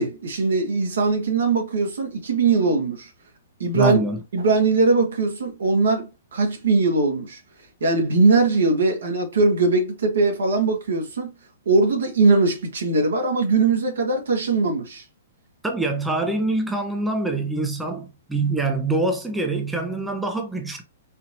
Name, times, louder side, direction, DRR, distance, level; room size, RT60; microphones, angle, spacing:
voice 1, 0.0-3.1 3.6-4.0 4.3-7.4 7.8-11.3 11.6-15.0, right 3 dB, 80° right, 1.7 m, -20 dB
voice 2, 3.7-4.2 15.6-20.8, right 2 dB, 5° right, 0.7 m, -25 dB
4.3 x 2.7 x 2.8 m
hypercardioid pair, 135°, 0 cm